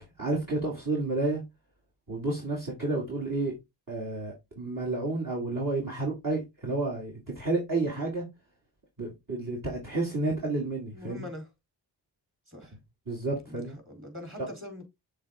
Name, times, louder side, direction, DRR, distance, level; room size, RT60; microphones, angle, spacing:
voice 1, 0.2-1.4 2.1-3.5 3.9-8.2 9.0-11.3 13.1-13.8 14.4-14.5, right 2 dB, 45° right, 2.8 m, -30 dB
voice 2, 10.9-11.5 12.5-12.7 13.4-14.8, left 1 dB, 25° right, 4.0 m, -43 dB
6.9 x 3.7 x 3.7 m
supercardioid pair, 45°, 46 cm